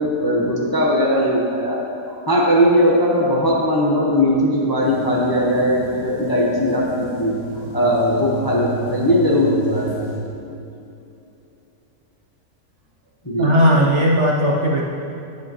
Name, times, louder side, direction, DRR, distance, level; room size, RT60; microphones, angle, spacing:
voice 1, 0.0-1.8 2.3-7.3 7.7-10.0 13.2-13.5, equal, 20° left, -4 dB, 0.8 m, -19 dB
sound 1, 4.8-10.2, right 4 dB, 50° left, 2.5 m, -33 dB
voice 2, 13.4-14.8, equal, 55° right, -3 dB, 1.0 m, -16 dB
10.5 x 8.5 x 3.1 m, 2.7 s
omnidirectional pair, 1.7 m